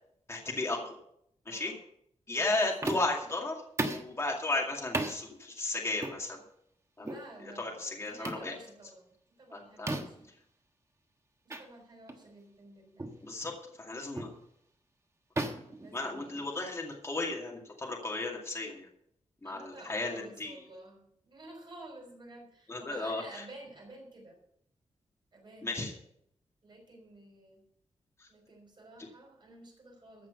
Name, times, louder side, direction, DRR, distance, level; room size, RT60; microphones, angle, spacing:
voice 1, 0.3-0.9 1.5-1.7 2.3-6.4 7.0-7.1 7.4-8.5 9.5-10.0 13.2-13.5 13.8-14.3 15.9-18.9 19.4-20.5 22.7-23.4 25.6-25.9 28.2-28.3, left 2 dB, 20° left, -1 dB, 2.2 m, -34 dB
voice 2, 1.5-1.8 2.3-2.9 7.0-10.2 11.4-13.3 15.8-16.4 19.4-24.4 25.3-26.0 26.6-27.6 28.3-30.3, right 2 dB, 40° right, 0 dB, 5.1 m, -52 dB
sound 1, 2.8-3.2 3.8-4.1 4.9-5.2 6.0-6.2 7.0-7.3 8.2-8.5 9.9-10.3 11.5-11.6 12.1-12.2 13.0-13.2 14.2-14.4 15.4-16.6, right 2 dB, 25° right, 1.3 m, -35 dB
15.0 x 6.1 x 6.9 m, 0.72 s
wide cardioid pair, 155°, 12 cm